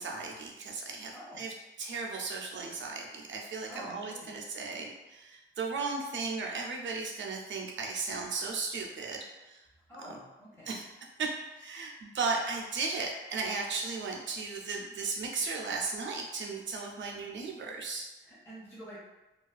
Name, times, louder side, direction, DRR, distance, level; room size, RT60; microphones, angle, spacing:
voice 1, 0.0-9.7 10.7-10.8 11.2-18.1, right 4 dB, 60° right, 1 dB, 0.4 m, -36 dB
voice 2, 1.1-1.4 3.7-4.4 9.9-10.8 18.2-19.0, equal, 10° left, -8 dB, 0.5 m, -47 dB
2.3 x 2.2 x 2.4 m, 1.0 s
wide cardioid pair, 155°, 21 cm